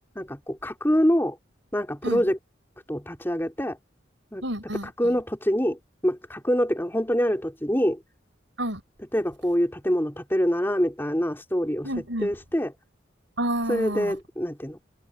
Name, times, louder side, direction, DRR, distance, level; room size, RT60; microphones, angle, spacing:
voice 1, 0.2-1.4 1.7-2.4 2.9-3.8 4.3-4.4 4.8-8.0 9.1-11.9 12.2-12.7 13.7-14.8, equal, 10° left, 3.6 m, -25 dB
voice 2, 4.4-4.9 8.6-8.8 11.8-12.3 13.4-14.1, right 1 dB, 80° right, 6.1 m, -29 dB
head